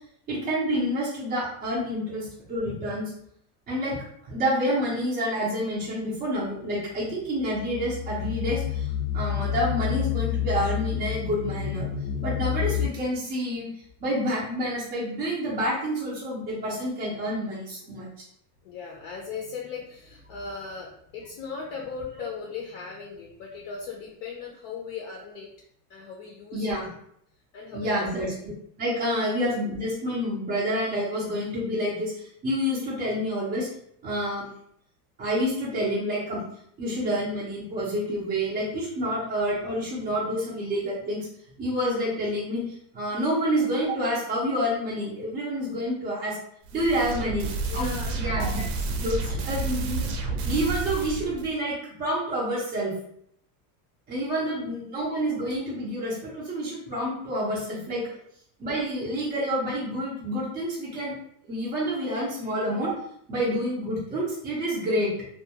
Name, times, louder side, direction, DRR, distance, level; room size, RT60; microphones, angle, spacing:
voice 1, 0.3-3.1 3.7-4.0 4.2-11.9 12.2-13.7 14.0-18.1 26.5-26.9 27.7-28.5 28.8-33.7 34.0-34.5 35.2-36.4 36.8-41.3 41.6-46.4 46.7-47.5 47.7-48.6 49.0-50.1 50.4-52.9 54.1-58.0 58.6-61.1 61.5-62.9 63.3-65.1, equal, 20° right, -8 dB, 0.4 m, -28 dB
sound 1, 7.2-12.9, left 10 dB, 90° left, 0.7 m, -29 dB
voice 2, 18.6-25.5 25.9-26.7 27.5-28.0 45.8-45.9 47.1-47.3 47.6-48.4 54.4-54.5, left 5 dB, 50° left, -2 dB, 0.5 m, -38 dB
sound 2, 46.7-51.5, right 3 dB, 70° right, 0.6 m, -30 dB
2.4 x 2.2 x 2.7 m, 0.70 s
supercardioid pair, 160°, 48 cm